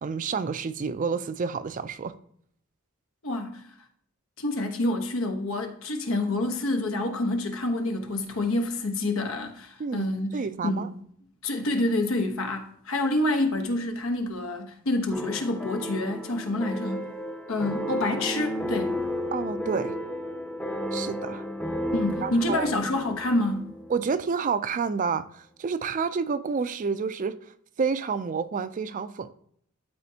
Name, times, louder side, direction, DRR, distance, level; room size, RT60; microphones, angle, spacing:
voice 1, 0.0-2.2 9.8-10.9 19.3-19.9 20.9-21.5 22.2-22.7 23.9-27.5 27.8-29.3, right 5 dB, 40° right, 0.4 m, -29 dB
voice 2, 3.2-3.6 4.4-10.4 10.6-10.9 11.4-17.1 17.5-19.0 21.9-23.7, left 2 dB, 85° left, 1.1 m, -27 dB
sound 1, 15.1-24.1, equal, 5° left, 0.7 m, -33 dB
12.0 x 4.3 x 2.8 m
head